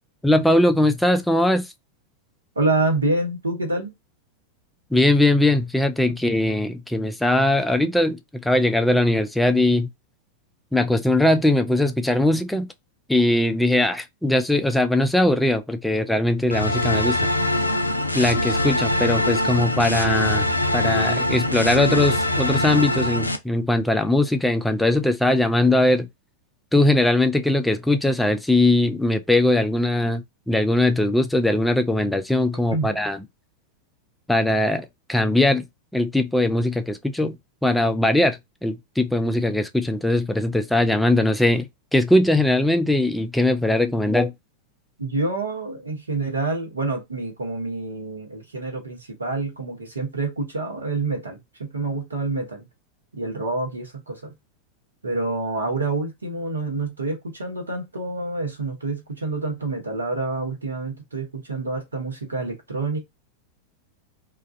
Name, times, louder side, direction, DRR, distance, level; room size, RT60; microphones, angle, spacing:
voice 1, 0.2-1.7 4.9-9.9 10.7-12.7 13.1-17.2 18.1-20.5 20.7-26.1 26.7-33.2 34.3-35.6 35.9-37.4 37.6-44.3, left 1 dB, 5° left, 0.4 m, -20 dB
voice 2, 2.5-3.9 32.7-32.9 45.0-52.7 53.1-54.3 55.0-63.0, right 3 dB, 75° right, 1.0 m, -27 dB
sound 1, 16.5-23.4, left 1 dB, 85° left, 0.4 m, -23 dB
2.3 x 2.3 x 2.5 m
figure-of-eight pair, 90°, 0 cm